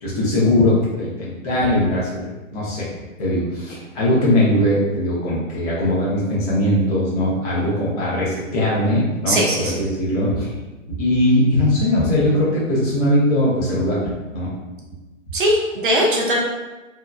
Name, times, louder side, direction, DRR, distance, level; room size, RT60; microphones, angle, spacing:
voice 1, 0.0-2.2 2.5-2.8 3.2-10.5 10.9-14.5, left 1 dB, 30° left, -7 dB, 0.8 m, -20 dB
voice 2, 9.3-9.8 15.3-16.4, equal, 40° right, -1 dB, 0.4 m, -19 dB
2.9 x 2.4 x 2.3 m, 1.1 s
hypercardioid pair, 155°, 41 cm